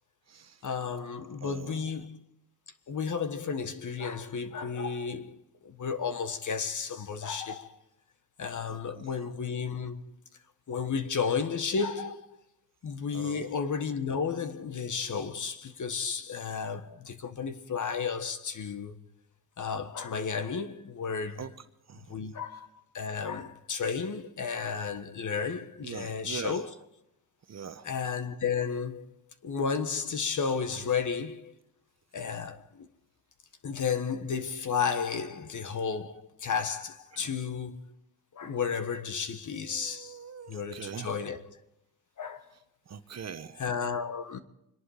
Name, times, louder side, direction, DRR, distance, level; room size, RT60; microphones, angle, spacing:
voice 1, 0.6-2.2 2.9-7.8 8.4-10.0 10.7-12.4 12.8-19.0 19.6-21.5 22.1-26.7 27.8-29.1 29.4-31.5 32.1-32.9 33.6-37.9 38.3-40.2 40.5-41.6 42.2-42.5 43.6-44.4, left 6 dB, 45° left, 1.5 m, -33 dB
voice 2, 1.4-1.7 8.9-9.0 13.1-13.5 21.4-21.5 21.9-22.1 25.8-26.6 27.5-27.9 37.1-37.3 39.7-41.2 42.9-43.6, right 7 dB, 40° right, 1.1 m, -42 dB
25.5 x 11.0 x 5.0 m
cardioid pair, 85°, 42 cm